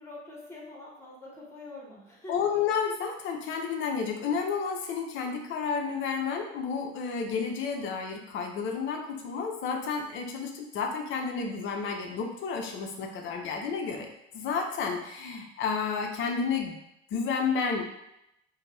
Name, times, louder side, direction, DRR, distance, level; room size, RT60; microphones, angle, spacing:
voice 1, 0.0-2.3, left 2 dB, 10° left, -3 dB, 0.9 m, -45 dB
voice 2, 2.3-14.1 14.3-16.8 17.1-17.9, left 5 dB, 35° left, 3 dB, 0.5 m, -31 dB
2.5 x 2.2 x 3.1 m, 0.83 s
figure-of-eight pair, 60°, 34 cm